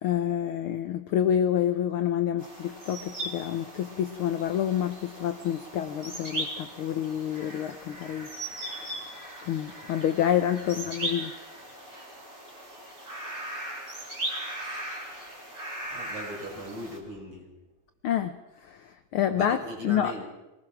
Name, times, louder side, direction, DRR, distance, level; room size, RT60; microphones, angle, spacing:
voice 1, 0.0-8.3 9.4-11.3 18.0-18.4 18.6-20.1, left 10 dB, 75° left, 9 dB, 1.2 m, -28 dB
sound 1, 2.4-17.0, right 1 dB, 25° right, 4.5 m, -38 dB
voice 2, 15.9-17.5 19.4-20.3, equal, 50° right, 0 dB, 6.3 m, -39 dB
24.0 x 19.5 x 6.0 m, 1.0 s
omnidirectional pair, 3.4 m